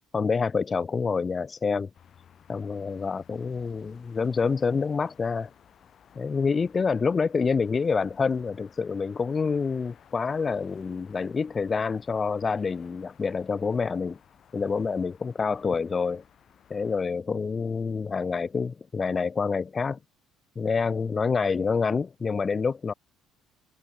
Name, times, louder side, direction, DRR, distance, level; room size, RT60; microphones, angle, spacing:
voice 1, 0.1-1.9 2.5-5.5 6.2-14.2 14.5-16.2 16.7-20.0 20.6-22.9, left 5 dB, 30° left, 0.8 m, -27 dB
sound 1, 1.9-17.0, left 8 dB, 50° left, 3.3 m, -57 dB
supercardioid pair, 80°, 0 cm